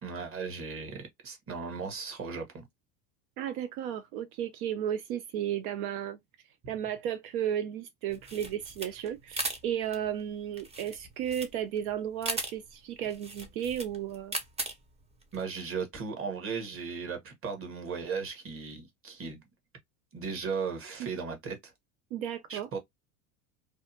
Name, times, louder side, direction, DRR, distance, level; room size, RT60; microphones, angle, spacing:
voice 1, 0.0-2.7 15.3-19.4 20.1-21.7 22.5-22.8, right 5 dB, 30° right, 1.1 m, -36 dB
voice 2, 3.4-6.2 6.7-14.4 22.1-22.7, right 10 dB, 75° right, 0.6 m, -34 dB
sound 1, 8.1-15.4, right 2 dB, 15° right, 0.6 m, -38 dB
2.6 x 2.2 x 2.7 m
supercardioid pair, 110°, 43 cm